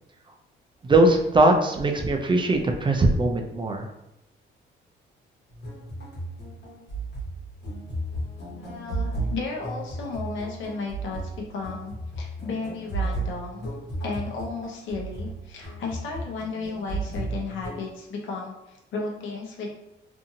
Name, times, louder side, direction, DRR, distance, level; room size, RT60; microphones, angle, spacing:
voice 1, 0.8-3.9, right 2 dB, 25° right, 3 dB, 0.4 m, -20 dB
sound 1, 5.5-17.9, right 2 dB, 60° left, 1.1 m, -34 dB
voice 2, 8.5-13.7 14.0-19.7, left 4 dB, 75° left, -1 dB, 0.8 m, -34 dB
2.7 x 2.5 x 2.6 m, 0.87 s
cardioid pair, 90°, 20 cm